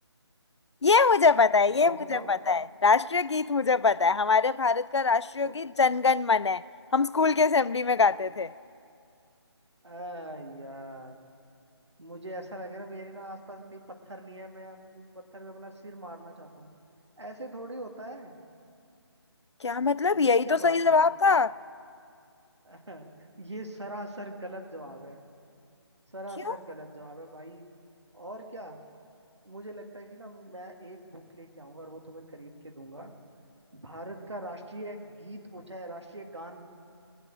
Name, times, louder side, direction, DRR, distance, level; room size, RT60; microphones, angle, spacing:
voice 1, 0.8-6.6 6.9-8.5 19.6-21.5 26.5-26.6, left 4 dB, 90° left, 0.4 m, -23 dB
voice 2, 1.6-2.4 5.4-5.6 9.8-11.3 12.0-16.7 17.2-18.3 20.1-21.0 22.6-25.2 26.1-27.6 28.1-28.8 29.4-33.1 33.7-36.6, right 1 dB, 90° right, 1.8 m, -42 dB
20.5 x 8.0 x 8.7 m
figure-of-eight pair, 155°, 14 cm